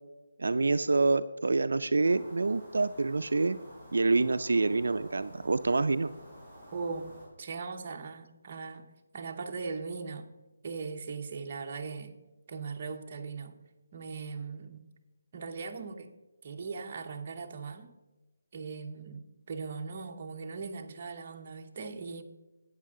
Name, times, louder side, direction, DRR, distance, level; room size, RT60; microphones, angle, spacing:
voice 1, 0.4-3.6 3.9-6.1, right 3 dB, 75° right, 11 dB, 0.4 m, -27 dB
sound 1, 2.0-7.3, equal, 10° left, 3.8 m, -51 dB
voice 2, 6.7-8.9 9.1-10.3 10.6-12.2 12.5-13.5 13.9-14.8 15.3-16.1 16.4-17.9 18.5-22.2, right 4 dB, 35° right, 3 dB, 1.0 m, -39 dB
12.0 x 8.8 x 3.7 m, 1.1 s
hypercardioid pair, 170°, 0 cm